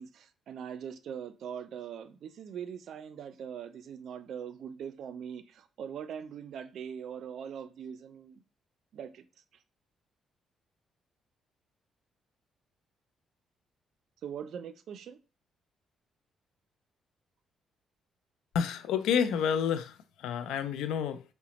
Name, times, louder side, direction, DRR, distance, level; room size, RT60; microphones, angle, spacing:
voice 1, 0.0-8.4 8.9-9.2 14.2-15.2, right 8 dB, 70° right, 0.4 m, -41 dB
voice 2, 18.5-21.2, left 7 dB, 85° left, 0.3 m, -29 dB
4.8 x 2.1 x 2.9 m
cardioid pair, 90°, 0 cm